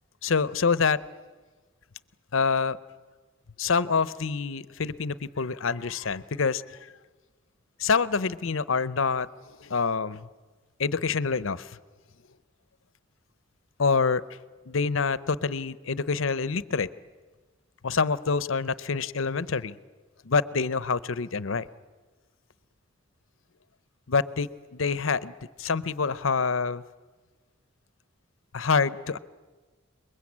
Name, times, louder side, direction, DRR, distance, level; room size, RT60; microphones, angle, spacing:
voice 1, 0.2-1.0 2.3-2.8 3.6-6.9 7.8-10.3 10.8-11.8 13.8-14.2 14.7-16.9 17.8-19.8 20.2-21.7 24.1-25.3 25.6-26.8 28.5-29.2, left 5 dB, 80° left, 16 dB, 0.7 m, -26 dB
29.0 x 21.5 x 8.6 m, 1.4 s
head